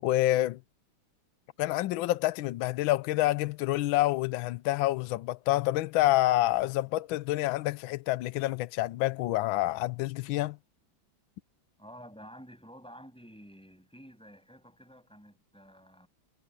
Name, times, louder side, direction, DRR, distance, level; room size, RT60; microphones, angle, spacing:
voice 1, 0.0-0.6 1.6-10.6, left 16 dB, 85° left, 1.4 m, -27 dB
voice 2, 11.8-16.1, equal, ahead, 6.7 m, -51 dB
omnidirectional pair, 2.2 m